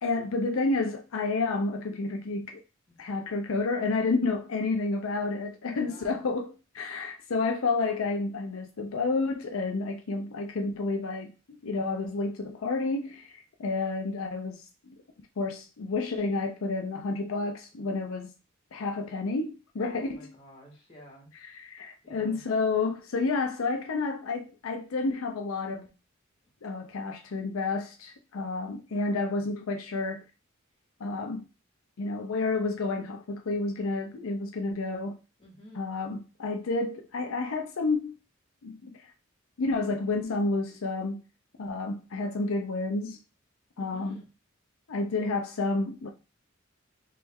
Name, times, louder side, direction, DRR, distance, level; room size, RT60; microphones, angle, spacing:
voice 1, 0.0-2.6 3.0-15.0 15.4-18.3 18.7-20.2 21.3-25.9 26.6-30.2 31.0-31.5 32.0-35.2 35.7-38.2 38.6-39.1 39.6-41.2 41.6-43.2 43.8-44.2 44.9-46.1, left 3 dB, 80° left, 0.5 m, -30 dB
voice 2, 5.7-6.3 17.7-17.8 19.8-21.3 22.0-22.4 35.4-35.9 43.8-44.3, left 1 dB, 25° left, 1.6 m, -51 dB
3.3 x 3.1 x 3.4 m
head